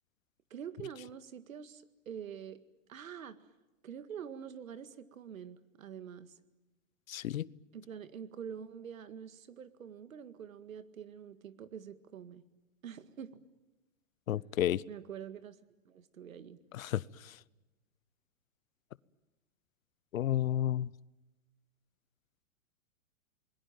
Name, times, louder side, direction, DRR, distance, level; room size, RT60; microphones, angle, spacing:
voice 1, 0.5-2.6 2.9-3.4 3.8-6.3 7.7-12.4 12.8-13.4 14.9-15.6 15.9-16.6, right 8 dB, 90° right, 12 dB, 2.0 m, -46 dB
voice 2, 7.1-7.5 14.3-14.8 16.7-17.3 20.1-20.9, left 12 dB, 85° left, 21 dB, 0.8 m, -32 dB
28.0 x 20.5 x 9.3 m, 1.1 s
hypercardioid pair, 145°, 40 cm